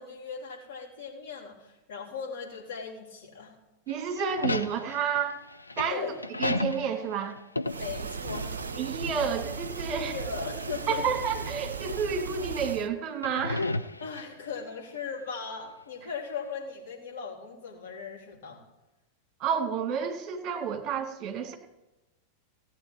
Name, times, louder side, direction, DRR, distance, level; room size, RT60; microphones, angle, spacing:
voice 1, 0.0-3.6 5.9-6.2 7.8-8.7 9.9-11.1 14.0-18.6, left 6 dB, 55° left, -1 dB, 3.0 m, -38 dB
sound 1, 3.9-8.8 9.0-9.2 10.2-10.9 11.6-11.7 13.1-14.6, left 2 dB, 85° left, 0.5 m, -33 dB
voice 2, 3.9-5.4 5.8-6.1 6.4-7.4 8.8-10.1 10.9-13.7 19.4-21.5, right 6 dB, 30° right, 5 dB, 2.2 m, -30 dB
sound 2, 7.7-12.9, right 5 dB, 70° right, 0.6 m, -36 dB
16.5 x 8.7 x 4.5 m, 1.0 s
figure-of-eight pair, 90°, 0 cm